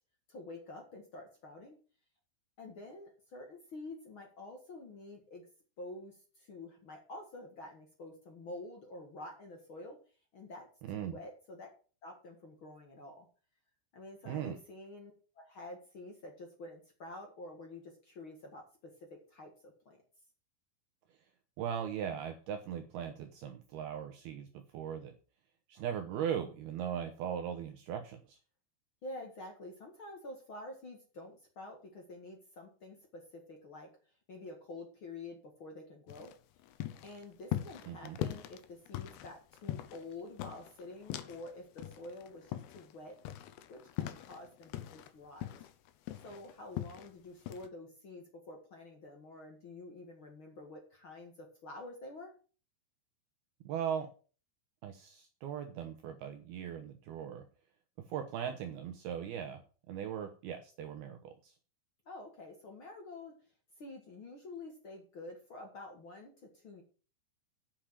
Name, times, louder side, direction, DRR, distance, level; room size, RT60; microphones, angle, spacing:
voice 1, 0.3-1.8 2.6-5.4 5.8-10.0 10.3-11.7 12.0-13.3 13.9-18.9 19.3-20.0 29.0-33.9 34.3-36.3 37.0-43.1 43.7-45.5 46.2-52.3 62.0-63.3 63.8-66.8, left 2 dB, 65° left, 2 dB, 1.3 m, -48 dB
voice 2, 14.3-14.6 21.6-24.5 24.7-25.1 25.7-28.4 37.9-38.2 53.7-54.1 54.8-57.4 58.1-59.6 59.9-61.5, right 9 dB, 70° right, 5 dB, 2.5 m, -39 dB
sound 1, 36.1-41.5 41.8-45.1 45.4-47.1 47.5-47.7, left 13 dB, 80° left, 2.8 m, -41 dB
8.9 x 6.5 x 7.5 m, 0.38 s
omnidirectional pair, 5.3 m